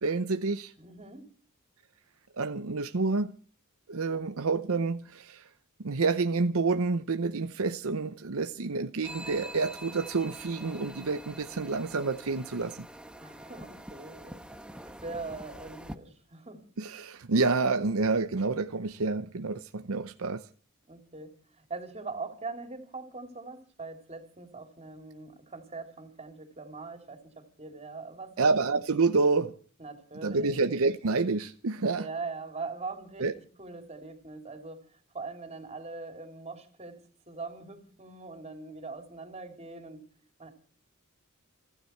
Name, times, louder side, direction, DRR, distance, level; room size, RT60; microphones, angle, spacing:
voice 1, 0.0-0.7 2.4-3.3 3.9-5.5 5.8-12.9 16.8-20.5 28.4-29.5 30.2-32.1 33.2-33.3, right 3 dB, 65° right, 0.8 m, -28 dB
voice 2, 0.8-1.3 13.2-14.4 14.7-16.6 20.9-28.6 29.8-30.6 32.0-33.3 33.6-40.1 40.4-40.5, right 3 dB, 30° right, 3.2 m, -42 dB
sound 1, 9.0-16.0, right 1 dB, 5° right, 1.1 m, -45 dB
30.0 x 10.0 x 4.5 m
head